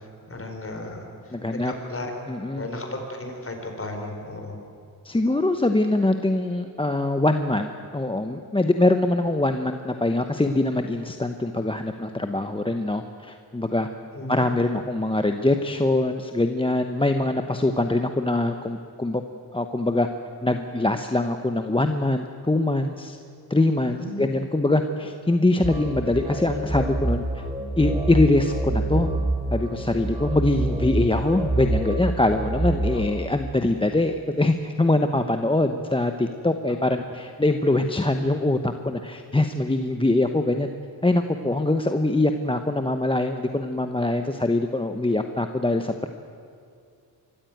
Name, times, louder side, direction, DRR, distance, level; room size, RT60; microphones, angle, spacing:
voice 1, 0.3-2.1 2.5-4.6 14.1-14.4 23.9-24.3, left 2 dB, 35° left, 3 dB, 4.6 m, -35 dB
voice 2, 1.3-1.7 2.3-2.7 5.0-13.9 14.3-19.2 19.5-20.1 20.4-23.2 23.5-27.4 27.8-29.1 29.5-40.7 41.0-46.1, left 2 dB, 15° left, 6 dB, 1.0 m, -23 dB
sound 1, 25.6-33.0, right 2 dB, 15° right, 2.9 m, -27 dB
24.5 x 14.5 x 9.2 m, 2.3 s
cardioid pair, 85°, 39 cm